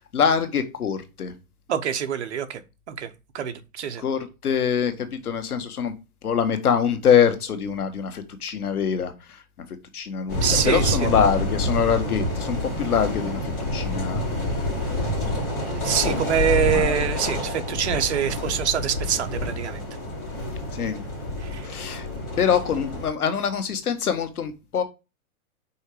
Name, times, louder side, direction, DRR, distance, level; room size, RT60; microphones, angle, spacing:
voice 1, 0.1-1.3 4.0-5.9 6.2-9.4 9.9-14.3 16.7-17.0 20.7-21.0 21.6-22.1 22.4-24.8, left 7 dB, 80° left, 1.8 m, -24 dB
voice 2, 1.7-2.6 2.9-4.0 10.4-11.1 15.7-19.8 21.4-21.7, right 9 dB, 50° right, 1.0 m, -25 dB
sound 1, 10.3-23.1, left 1 dB, 25° left, 3.2 m, -28 dB
5.6 x 4.6 x 4.9 m
hypercardioid pair, 170°, 44 cm